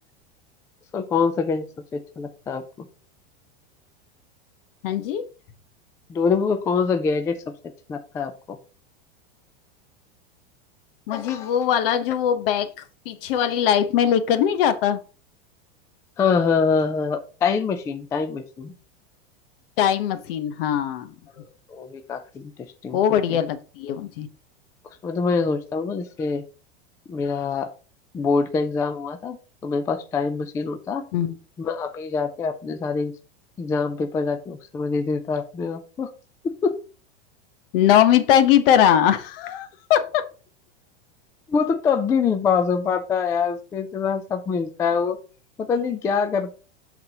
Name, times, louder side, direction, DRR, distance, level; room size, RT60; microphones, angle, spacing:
voice 1, 0.9-1.7 1.9-2.9 6.1-7.4 7.9-8.6 11.1-11.5 16.2-18.7 21.4-21.5 21.7-22.5 22.8-23.0 23.3-23.4 25.0-26.4 27.1-27.7 28.1-29.4 29.6-31.0 31.6-33.1 33.6-36.1 36.6-36.8 41.5-45.2 45.6-46.6, left 5 dB, 10° left, 0.3 m, -24 dB
voice 2, 4.8-5.2 11.1-15.0 19.8-21.1 22.9-24.3 31.1-31.4 37.7-40.3, left 10 dB, 60° left, 1.0 m, -21 dB
11.5 x 4.1 x 2.9 m
supercardioid pair, 145°, 31 cm